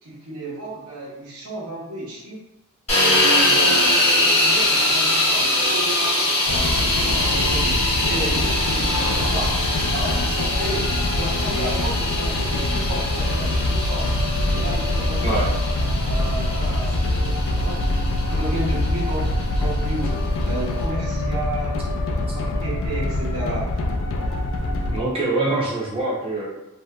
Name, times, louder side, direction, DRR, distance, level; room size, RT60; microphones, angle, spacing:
voice 1, 0.0-2.4 3.0-9.6 9.9-14.2 14.5-15.6 16.1-17.8 18.3-23.7, right 2 dB, 90° right, -5 dB, 0.8 m, -32 dB
sound 1, 2.9-20.8, left 1 dB, 30° left, 1.0 m, -23 dB
sound 2, 6.5-25.0, left 1 dB, 65° left, 0.4 m, -24 dB
voice 2, 24.9-26.5, right 2 dB, 25° right, -5 dB, 0.5 m, -24 dB
2.8 x 2.7 x 2.2 m, 0.93 s
head